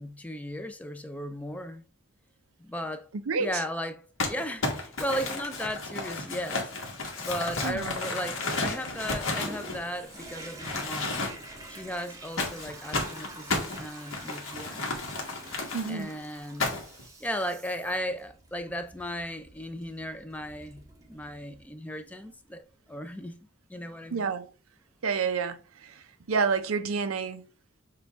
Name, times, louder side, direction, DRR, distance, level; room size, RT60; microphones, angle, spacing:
voice 1, 0.0-1.8 2.6-3.1 3.4-6.7 7.2-11.1 11.7-14.9 15.9-16.8 17.2-20.8 21.1-22.6 22.9-23.4 23.7-24.3, equal, 5° left, 0.4 m, -36 dB
voice 2, 3.3-3.6 7.6-7.9 15.7-16.1 24.1-24.5 25.0-27.4, right 5 dB, 90° right, 0.5 m, -29 dB
Crumpling crinkling, 4.2-10.2 10.6-11.6 12.4-15.9 16.6-17.0, left 3 dB, 70° left, 1.3 m, -32 dB
Toilet flush, 9.3-21.7 22.2-22.3, right 1 dB, 15° right, 0.8 m, -47 dB
6.7 x 2.3 x 3.4 m
head